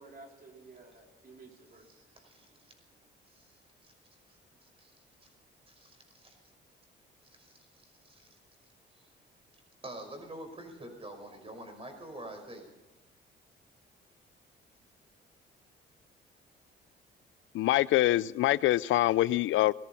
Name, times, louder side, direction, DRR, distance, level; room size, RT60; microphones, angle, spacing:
voice 1, 0.0-2.0, right 3 dB, 45° right, 1 dB, 3.8 m, -53 dB
voice 2, 1.7-2.7 3.3-3.9 4.3-4.9 5.2-5.3 5.7-6.4 7.3-8.4 8.9-9.1 9.8-12.7, right 1 dB, 30° right, 4 dB, 5.5 m, -48 dB
voice 3, 17.5-19.7, left 15 dB, 75° left, 20 dB, 0.4 m, -25 dB
18.5 x 13.5 x 5.7 m, 1.1 s
cardioid pair, 90°, 20 cm